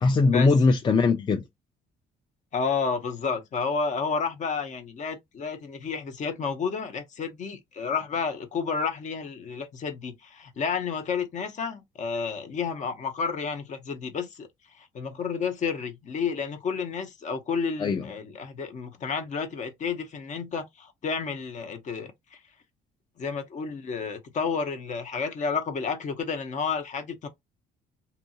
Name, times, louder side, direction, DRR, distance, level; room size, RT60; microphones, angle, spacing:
voice 1, 0.0-1.5 17.8-18.0, left 4 dB, 25° left, 0.4 m, -21 dB
voice 2, 2.5-14.5 14.8-22.1 23.2-27.3, left 5 dB, 45° left, 0.8 m, -31 dB
2.7 x 2.6 x 2.6 m
cardioid pair, 110°, 17 cm